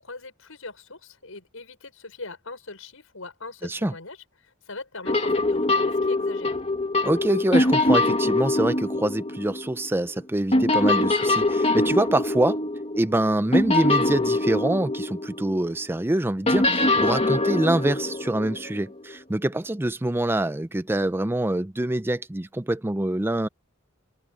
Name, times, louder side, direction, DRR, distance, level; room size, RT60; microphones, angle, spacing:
voice 1, 0.0-6.6, left 3 dB, 80° left, 6.1 m, -40 dB
voice 2, 3.6-3.9 7.0-12.6 12.9-23.5, right 1 dB, 10° right, 0.5 m, -25 dB
sound 1, 5.1-10.2 10.5-15.8 16.5-19.1, left 2 dB, 30° left, 2.0 m, -23 dB
head